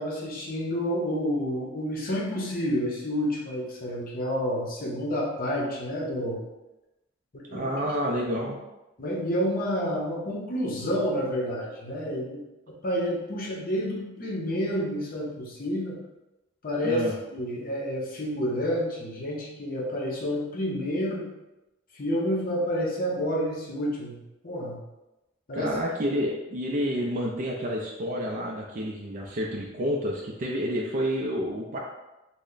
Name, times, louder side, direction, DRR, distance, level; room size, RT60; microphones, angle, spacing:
voice 1, 0.0-6.4 7.3-7.7 9.0-12.4 12.7-16.0 16.6-17.0 17.3-21.2 21.9-24.2 24.4-24.8 25.5-25.7, equal, 45° left, -3 dB, 0.8 m, -29 dB
voice 2, 7.5-8.6 16.8-17.1 25.5-31.8, equal, 40° right, -2 dB, 0.4 m, -29 dB
3.3 x 2.1 x 3.8 m, 0.99 s
head